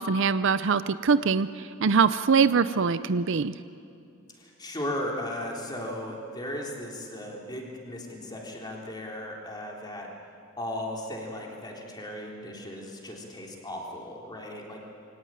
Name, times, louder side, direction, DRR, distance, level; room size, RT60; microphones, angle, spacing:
voice 1, 0.0-1.5 1.8-3.5, right 5 dB, 65° right, 14 dB, 0.6 m, -23 dB
voice 2, 4.3-10.1 10.6-14.8, left 1 dB, 20° left, -1 dB, 3.8 m, -36 dB
23.5 x 18.0 x 9.3 m, 2.5 s
head